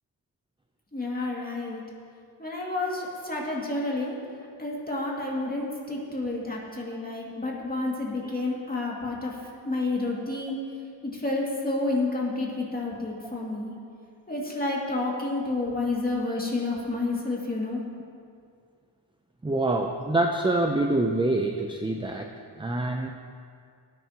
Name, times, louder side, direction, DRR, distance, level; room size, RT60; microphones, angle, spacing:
voice 1, 0.9-1.8 2.4-4.2 4.6-9.3 9.6-10.6 11.0-13.7 14.3-17.8, left 2 dB, 20° left, -3 dB, 2.3 m, -30 dB
voice 2, 19.4-22.3 22.6-23.1, right 2 dB, 10° right, 4 dB, 0.5 m, -26 dB
18.0 x 9.4 x 2.9 m, 2.3 s
wide cardioid pair, 105°, 46 cm